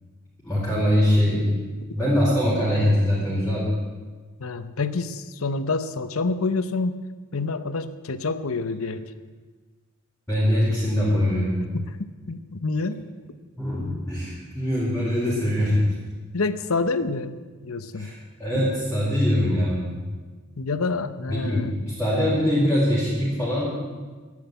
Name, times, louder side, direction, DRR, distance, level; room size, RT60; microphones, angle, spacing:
voice 1, 0.4-1.4 1.9-3.7 10.3-11.6 13.6-15.8 17.9-18.1 18.4-19.9 21.3-23.6, equal, 5° left, -10 dB, 4.2 m, -22 dB
voice 2, 4.4-7.0 7.3-9.0 11.7-12.0 12.3-13.0 16.3-18.1 18.5-18.7 20.6-21.8, left 3 dB, 75° left, 12 dB, 0.8 m, -27 dB
12.5 x 10.5 x 8.1 m, 1.4 s
head